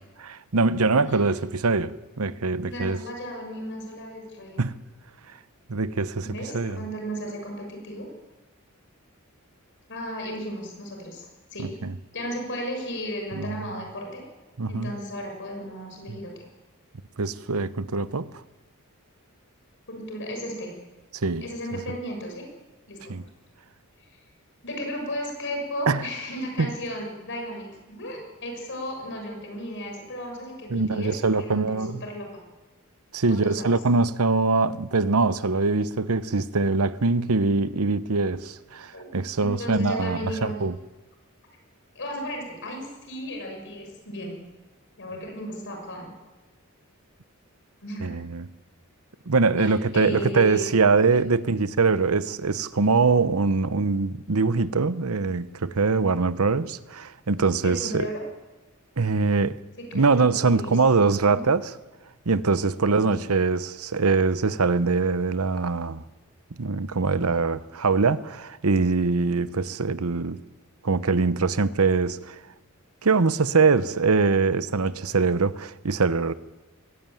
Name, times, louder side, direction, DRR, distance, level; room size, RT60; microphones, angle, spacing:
voice 1, 0.2-3.0 4.6-4.8 5.7-6.8 11.6-11.9 13.3-13.7 14.6-14.9 16.1-16.2 17.2-18.4 21.1-21.4 21.7-21.8 23.1-23.2 25.9-26.1 26.6-26.7 30.7-32.0 33.1-40.8 48.0-48.5 49.3-58.1 59.0-59.6 59.9-61.7 62.3-66.0 66.6-70.4 70.8-72.4 73.0-76.3, right 4 dB, 85° right, 0.9 m, -23 dB
voice 2, 2.7-4.6 6.2-8.1 9.9-11.3 11.5-11.7 12.1-14.2 14.7-16.3 19.9-20.7 21.4-22.5 22.9-23.2 24.0-24.1 24.6-31.1 31.4-32.2 33.3-33.7 38.9-39.1 39.4-40.5 41.9-44.4 45.0-46.1 47.8-48.2 49.6-50.7 51.1-51.2 57.6-58.2 59.9-61.4 62.8-63.3, equal, 60° left, 6.5 m, -35 dB
21.5 x 17.0 x 9.2 m
head